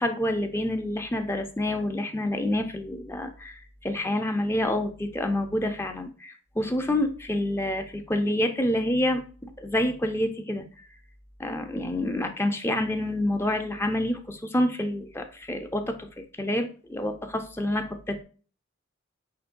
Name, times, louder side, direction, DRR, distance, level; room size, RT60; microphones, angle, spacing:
voice 1, 0.0-10.6 11.4-18.2, left 1 dB, 10° left, 5 dB, 0.5 m, -28 dB
5.8 x 3.1 x 2.5 m, 0.38 s
head